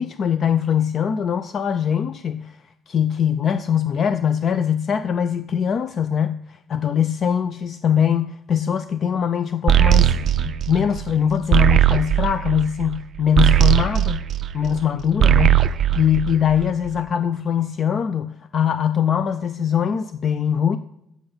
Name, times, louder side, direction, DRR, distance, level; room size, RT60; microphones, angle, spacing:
voice 1, 0.0-2.6 2.9-14.2 14.5-15.6 16.0-20.8, left 8 dB, 40° left, 11 dB, 0.3 m, -22 dB
sound 1, 9.7-14.8 15.1-16.9, right 11 dB, 45° right, 0.4 m, -18 dB
7.7 x 7.2 x 5.2 m, 0.77 s
cardioid pair, 145°, 0 cm